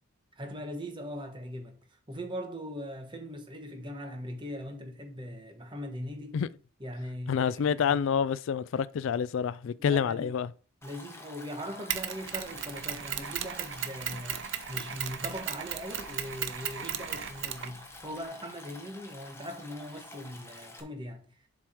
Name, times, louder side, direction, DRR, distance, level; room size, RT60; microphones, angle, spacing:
voice 1, 0.4-1.7 2.1-6.4 6.8-8.0 9.8-10.3 10.8-14.4 14.7-21.5, equal, 20° right, 1.3 m, -40 dB
voice 2, 7.3-10.5, left 7 dB, 60° left, 0.3 m, -28 dB
Stream, 10.8-20.8, left 2 dB, 10° left, 1.1 m, -48 dB
Mechanisms, 11.9-18.2, right 10 dB, 55° right, 0.7 m, -36 dB
7.5 x 4.8 x 4.6 m
head